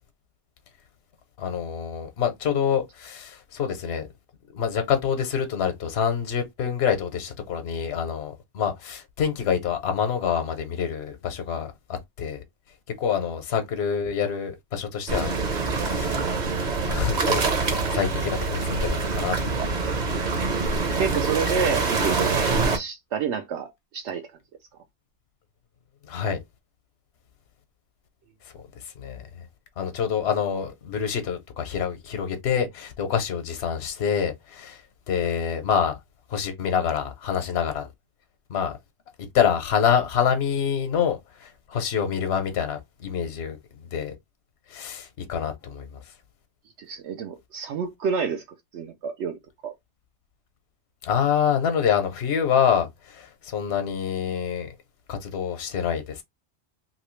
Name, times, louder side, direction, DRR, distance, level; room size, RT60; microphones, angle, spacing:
voice 1, 1.4-4.1 4.5-11.7 12.2-12.4 13.0-15.3 15.7-16.2 16.9-19.8 26.0-26.4 29.0-29.3 29.8-34.8 35.1-35.9 36.3-37.9 38.5-38.8 39.3-44.1 44.7-46.0 51.0-54.7 55.1-56.2, left 7 dB, 70° left, 1.0 m, -26 dB
sound 1, 15.1-22.8, right 4 dB, 45° right, 0.8 m, -25 dB
voice 2, 21.0-24.2 46.8-48.4 48.7-49.7, right 6 dB, 80° right, 0.9 m, -29 dB
2.9 x 2.7 x 3.0 m
omnidirectional pair, 1.2 m